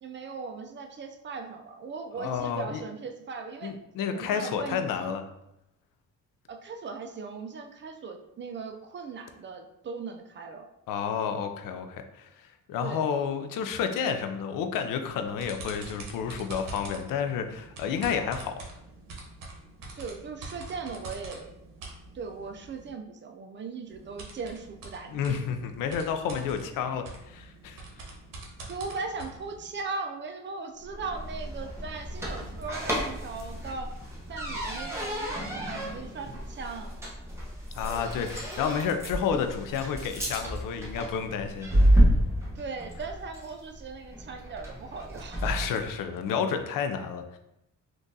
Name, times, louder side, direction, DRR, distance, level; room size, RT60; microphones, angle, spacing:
voice 1, 0.0-3.7 4.1-5.2 6.5-10.7 12.8-13.0 20.0-21.5 22.1-25.4 28.7-34.0 34.3-37.0 42.6-45.4, right 4 dB, 35° right, 5 dB, 0.4 m, -38 dB
voice 2, 2.2-2.8 3.6-5.2 10.9-12.3 12.7-18.5 25.1-27.8 37.7-41.7 45.4-47.4, left 7 dB, 85° left, 7 dB, 0.5 m, -30 dB
sound 1, 15.1-22.9 23.9-29.7, right 2 dB, 85° right, 0.8 m, -45 dB
sound 2, 30.8-45.9, right 1 dB, 10° right, 0.8 m, -30 dB
3.7 x 2.4 x 2.7 m, 0.85 s
cardioid pair, 100°, 32 cm